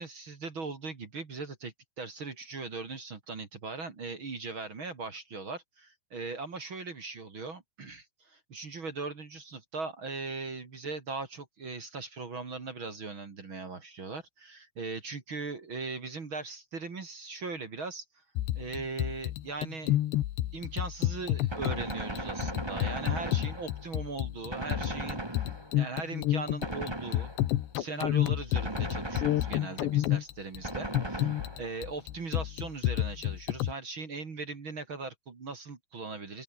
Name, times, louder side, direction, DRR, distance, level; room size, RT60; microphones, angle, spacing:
voice 1, 0.0-18.0 18.6-20.0 20.5-25.4 25.7-27.3 27.7-36.4, right 4 dB, 35° right, 2.7 m, -39 dB
sound 1, 18.4-33.7, left 14 dB, 75° left, 3.5 m, -30 dB
Gunshot gunfire, 21.5-24.0 24.5-25.9 26.6-27.6 28.5-29.9 30.6-31.9, right 1 dB, 10° right, 1.8 m, -37 dB
open air
omnidirectional pair, 5.1 m